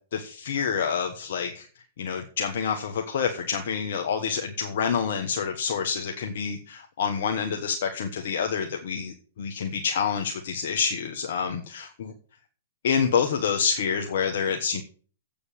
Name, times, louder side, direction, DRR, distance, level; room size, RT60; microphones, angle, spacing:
voice 1, 0.1-1.7 2.0-12.1 12.8-14.8, left 6 dB, 65° left, 5 dB, 1.3 m, -27 dB
8.3 x 7.0 x 7.4 m, 0.41 s
hypercardioid pair, 120°, 0 cm